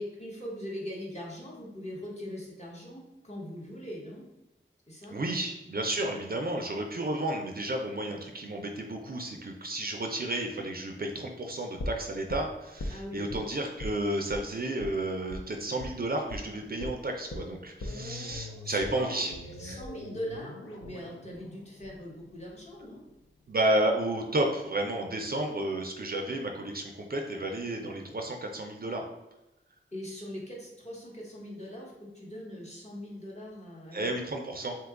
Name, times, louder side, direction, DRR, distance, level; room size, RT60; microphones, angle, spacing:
voice 1, 0.0-4.2 4.9-5.2 12.9-13.3 18.6-19.2 19.6-23.0 29.9-34.1, left 1 dB, 35° left, -3 dB, 0.9 m, -41 dB
voice 2, 5.1-19.3 19.6-19.8 23.5-29.0 33.9-34.8, right 1 dB, 45° right, 2 dB, 0.4 m, -32 dB
sound 1, 11.8-13.4 13.8-14.0 14.3-14.4 14.8-14.9 15.3-15.4 15.8-16.0 16.3-16.4 16.8-22.8 23.1-23.2, left 1 dB, 75° left, 0.5 m, -41 dB
2.8 x 2.2 x 3.5 m, 0.97 s
wide cardioid pair, 65°, 21 cm